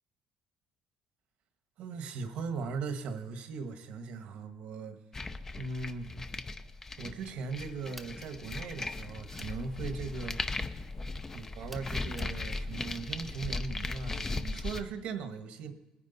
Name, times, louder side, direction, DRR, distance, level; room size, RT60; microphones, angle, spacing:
voice 1, 1.8-5.0 5.6-6.1 7.0-10.4 11.3-15.7, right 4 dB, 70° right, 8 dB, 1.3 m, -39 dB
sound 1, 5.1-14.8, left 3 dB, 20° left, 0.6 m, -37 dB
sound 2, 7.9-8.2 9.3-9.6 11.7-12.4, equal, 5° left, 1.0 m, -50 dB
20.0 x 9.9 x 4.0 m, 1.0 s
cardioid pair, 130°, 2 cm